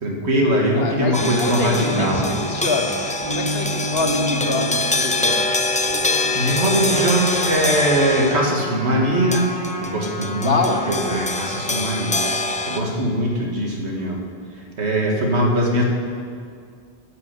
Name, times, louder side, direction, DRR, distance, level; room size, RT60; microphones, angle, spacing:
voice 1, 0.0-2.3 6.3-9.5 9.8-12.2 12.7-14.2 14.8-15.8, right 1 dB, 90° right, 0 dB, 2.0 m, -21 dB
voice 2, 0.7-5.4 10.4-10.8, left 3 dB, 65° left, 2 dB, 1.5 m, -25 dB
sound 1, 1.1-8.6 9.3-12.8, left 2 dB, 10° left, 0.3 m, -25 dB
sound 2, 1.7-7.8, right 1 dB, 40° right, 3.9 m, -30 dB
Trumpet, 6.9-11.6, left 2 dB, 35° left, 2.0 m, -33 dB
10.5 x 6.8 x 8.1 m, 2.2 s
omnidirectional pair, 1.1 m